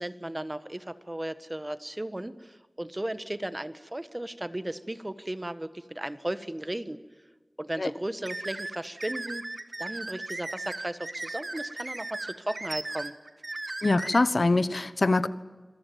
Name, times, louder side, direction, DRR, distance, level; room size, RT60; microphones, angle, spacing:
voice 1, 0.0-7.0 7.6-9.4 9.8-13.1, right 1 dB, 25° right, 1.5 m, -35 dB
sound 1, 8.3-14.2, right 2 dB, 55° right, 1.7 m, -37 dB
voice 2, 13.8-15.3, left 2 dB, 70° left, 1.1 m, -23 dB
27.0 x 22.0 x 9.3 m
wide cardioid pair, 60°, 0 cm